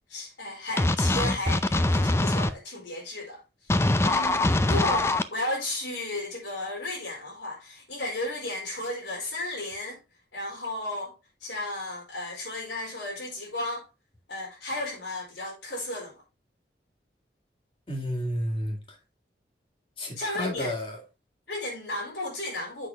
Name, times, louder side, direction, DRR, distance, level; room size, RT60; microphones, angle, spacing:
voice 1, 0.1-3.4 4.0-10.0 10.3-11.1 11.4-13.9 14.3-16.2 20.2-20.7 21.5-22.9, left 1 dB, 85° left, 4.5 m, -34 dB
sound 1, 0.8-2.5 3.7-5.2, left 2 dB, 15° left, 0.4 m, -23 dB
voice 2, 17.9-19.0 20.0-21.0, equal, 30° left, 1.9 m, -31 dB
7.6 x 6.0 x 3.4 m
head